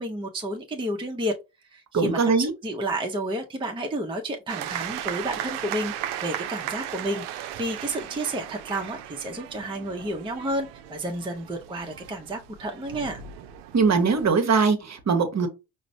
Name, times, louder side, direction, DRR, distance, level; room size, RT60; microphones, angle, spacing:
voice 1, 0.0-1.3 1.7-13.2, right 1 dB, 10° right, 0.6 m, -31 dB
voice 2, 1.9-2.5 13.7-15.5, right 5 dB, 35° right, 0.9 m, -21 dB
sound 1, 4.5-14.3, right 11 dB, 65° right, 0.6 m, -36 dB
5.0 x 2.1 x 2.6 m
hypercardioid pair, 45°, 45 cm